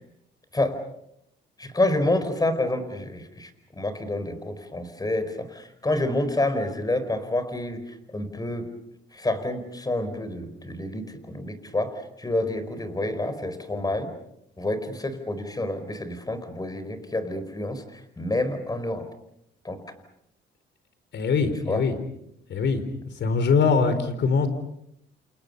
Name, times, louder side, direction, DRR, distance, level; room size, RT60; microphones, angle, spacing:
voice 1, 1.6-3.5 3.8-8.7 9.1-14.1 14.6-19.1 19.6-19.8 21.7-21.8, left 1 dB, 20° left, 10 dB, 4.8 m, -28 dB
voice 2, 21.1-22.0 22.5-24.5, left 5 dB, 65° left, 11 dB, 4.5 m, -23 dB
29.5 x 28.5 x 5.5 m, 0.74 s
cardioid pair, 90°, 20 cm